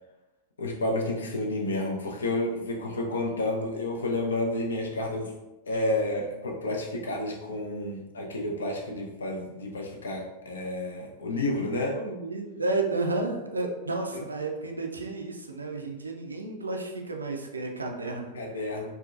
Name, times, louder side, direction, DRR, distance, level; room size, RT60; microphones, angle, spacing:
voice 1, 0.6-5.3 5.7-12.0 14.1-14.2 18.3-19.0, left 2 dB, 70° left, 1 dB, 0.4 m, -30 dB
voice 2, 11.9-18.3, right 3 dB, 80° right, 2 dB, 0.3 m, -32 dB
2.6 x 2.0 x 2.4 m, 1.0 s
figure-of-eight pair, 90°, 0 cm